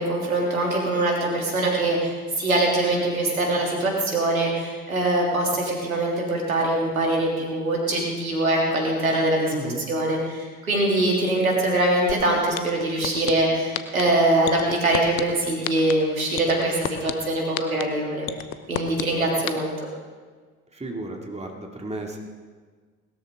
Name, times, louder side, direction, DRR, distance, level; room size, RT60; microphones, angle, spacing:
voice 1, 0.0-18.3 18.7-19.7, right 1 dB, 85° right, -2 dB, 3.2 m, -23 dB
voice 2, 9.5-9.8 20.7-22.2, right 2 dB, 15° right, 1 dB, 2.6 m, -33 dB
sound 1, 12.1-12.2 12.6-13.3 13.7-14.0 14.5-15.2 15.6-15.9 16.4-17.1 17.6-17.8 18.3-19.0 19.5-19.6, left 15 dB, 75° left, 0.9 m, -28 dB
20.5 x 13.5 x 3.8 m, 1.5 s
figure-of-eight pair, 55°, 41 cm